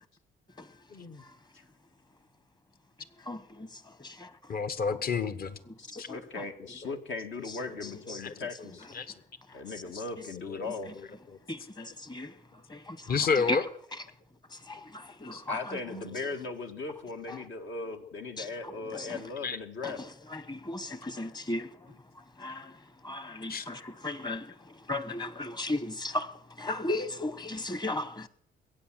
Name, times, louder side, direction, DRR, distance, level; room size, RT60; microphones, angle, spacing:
voice 1, 3.2-4.5 5.7-6.4 7.8-8.2 9.5-9.6 11.5-12.4 12.7-13.2 13.5-13.6 14.5-16.0 17.3-17.4 18.4-18.5 18.9-19.2 19.8-21.9 22.4-28.3, left 1 dB, 20° left, 1.1 m, -37 dB
voice 2, 4.5-5.6 6.0-6.1 8.2-8.4 8.9-9.1 10.5-10.6 13.1-13.6 15.3-15.4 17.6-17.7 19.4-19.6 23.5-23.7, left 5 dB, 50° left, 1.3 m, -29 dB
voice 3, 5.8-8.9 9.5-10.9 15.5-20.0, left 3 dB, 70° left, 1.8 m, -38 dB
21.0 x 9.0 x 7.5 m
cardioid pair, 90°, 20 cm